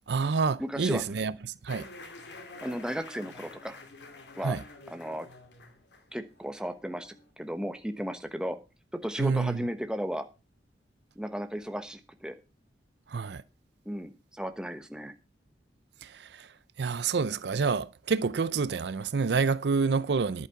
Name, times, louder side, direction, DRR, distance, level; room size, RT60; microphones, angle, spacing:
voice 1, 0.1-1.3 1.6-1.9 4.4-4.6 9.2-9.6 13.1-13.4 16.0-16.5 16.8-20.5, right 4 dB, 70° right, 0.5 m, -28 dB
voice 2, 0.6-1.0 2.6-3.7 4.3-4.6 4.9-5.3 6.1-8.6 8.9-10.2 11.2-12.4 13.9-15.1, equal, 5° right, 1.1 m, -35 dB
sound 1, 1.7-7.3, left 3 dB, 75° left, 2.5 m, -48 dB
11.0 x 8.2 x 5.7 m
head